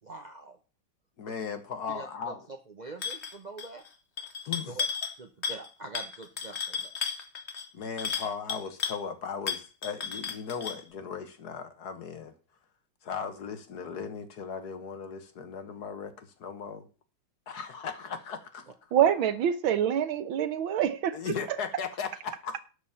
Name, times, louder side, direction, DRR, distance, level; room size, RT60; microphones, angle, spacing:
voice 1, 0.0-0.6 1.2-1.3 1.9-3.8 4.6-4.9 5.2-6.9, right 3 dB, 50° right, 0.5 m, -44 dB
voice 2, 1.2-2.5 4.5-4.8 7.7-12.3 13.0-16.9 17.5-18.7 21.1-22.6, left 6 dB, 55° left, 1.7 m, -37 dB
sound 1, 3.0-3.3 3.6-3.9 4.2-5.2 5.4-5.7 5.9-9.0 9.5-10.8, left 6 dB, 40° left, 1.2 m, -34 dB
voice 3, 18.9-21.3, right 9 dB, 85° right, 1.8 m, -26 dB
12.0 x 5.0 x 7.1 m
omnidirectional pair, 2.1 m